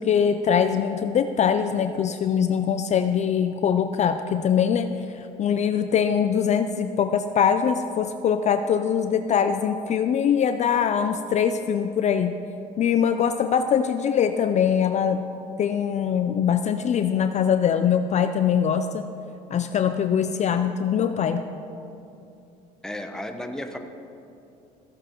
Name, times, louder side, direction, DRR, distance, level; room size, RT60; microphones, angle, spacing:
voice 1, 0.0-12.4 12.8-15.2 15.6-19.1 19.5-21.4, left 8 dB, 45° left, 8 dB, 0.4 m, -22 dB
voice 2, 22.8-23.8, left 1 dB, 5° left, 5 dB, 0.7 m, -33 dB
14.5 x 8.1 x 3.0 m, 2.7 s
cardioid pair, 110°, 17 cm